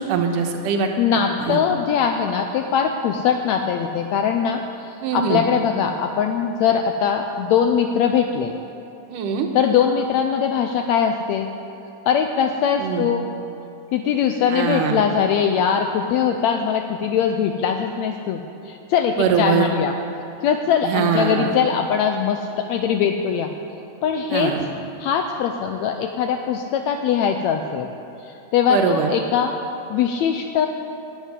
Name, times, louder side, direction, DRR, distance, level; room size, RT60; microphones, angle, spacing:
voice 1, 0.1-0.9 1.3-1.6 5.0-5.4 9.1-9.5 12.8-13.1 14.5-15.0 19.2-19.7 20.8-21.5 24.3-24.6 28.7-29.1, right 7 dB, 80° right, 4 dB, 2.6 m, -22 dB
voice 2, 1.0-8.5 9.5-11.5 12.1-13.2 13.9-18.4 18.7-19.9 20.4-23.5 24.0-24.6 25.0-27.9 28.2-29.5 29.9-30.7, left 7 dB, 85° left, 5 dB, 1.6 m, -21 dB
11.0 x 7.7 x 9.7 m, 2.8 s
omnidirectional pair, 3.8 m